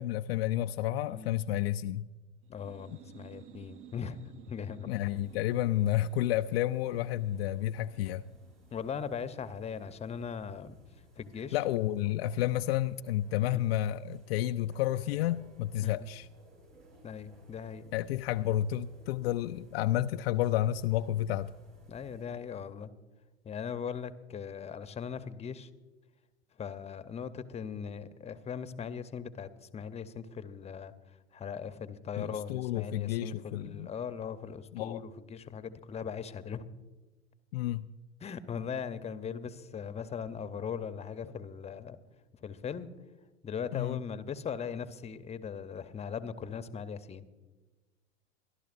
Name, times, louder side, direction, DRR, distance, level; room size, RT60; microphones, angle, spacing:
voice 1, 0.0-2.1 2.9-3.0 4.9-8.2 11.5-16.3 17.9-21.5 32.2-33.9 34.7-35.0 37.5-37.9 43.7-44.0, left 13 dB, 60° left, 0.4 m, -31 dB
sound 1, 2.4-9.9, right 10 dB, 35° right, 0.9 m, -56 dB
voice 2, 2.5-4.2 4.5-4.9 8.7-10.8 11.2-11.6 13.5-13.7 15.8-15.9 17.0-17.9 21.9-22.9 23.4-25.7 26.6-30.9 31.3-36.7 38.2-42.0 42.4-43.0 43.4-47.2, left 7 dB, 20° left, 0.8 m, -39 dB
sound 2, 5.0-22.2, equal, 80° right, 3.2 m, -59 dB
25.0 x 12.0 x 2.6 m
hypercardioid pair, 85°, 35 cm